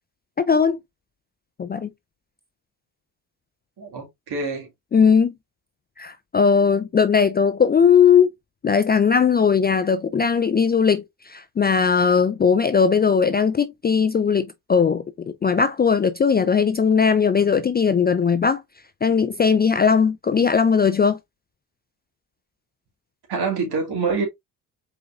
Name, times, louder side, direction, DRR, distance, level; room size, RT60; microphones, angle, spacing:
voice 1, 0.4-0.8 1.6-1.9 4.9-5.3 6.0-8.3 8.6-15.0 15.4-18.6 19.0-21.2, left 6 dB, 20° left, 0.4 m, -18 dB
voice 2, 3.8-4.7 23.3-24.3, right 4 dB, 55° right, 2.0 m, -26 dB
4.6 x 3.9 x 2.4 m
hypercardioid pair, 50°, 46 cm